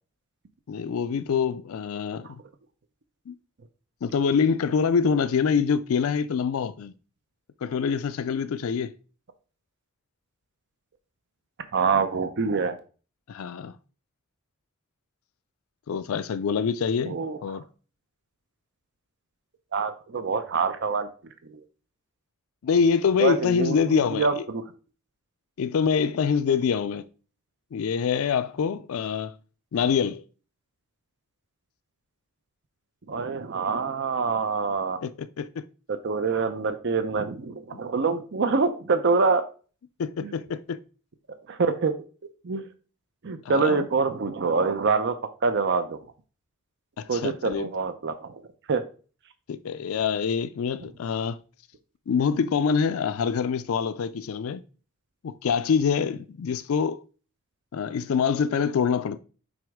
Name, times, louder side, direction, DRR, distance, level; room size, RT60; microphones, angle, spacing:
voice 1, 0.7-2.4 3.3-3.4 4.0-6.9 7.6-9.0 13.3-13.8 15.9-17.2 17.4-17.6 22.6-24.4 25.6-27.1 27.7-29.4 29.7-30.2 35.0-35.7 37.7-37.8 40.0-40.8 43.4-43.9 47.0-47.7 49.5-51.4 52.1-54.6 55.2-57.0 57.7-59.2, left 6 dB, 75° left, 0.4 m, -25 dB
voice 2, 11.7-12.8 17.1-17.6 19.7-21.1 21.4-21.6 23.2-24.6 33.1-35.0 35.9-39.4 40.2-40.3 41.5-41.9 42.4-42.7 43.2-45.2 45.4-46.0 47.1-48.4 48.7-48.8, right 4 dB, 55° right, 0.6 m, -25 dB
6.1 x 5.0 x 3.5 m
head